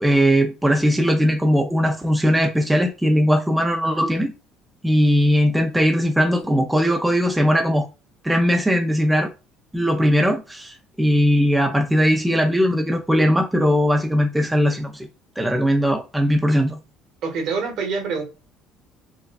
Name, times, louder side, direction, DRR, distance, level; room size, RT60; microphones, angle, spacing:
voice 1, 0.0-4.3 4.8-7.9 8.2-9.3 9.7-15.1 15.4-16.8, equal, 5° right, 0.4 m, -19 dB
voice 2, 17.2-18.2, right 5 dB, 60° right, 1.4 m, -25 dB
4.6 x 2.2 x 2.3 m
cardioid pair, 155°, 0 cm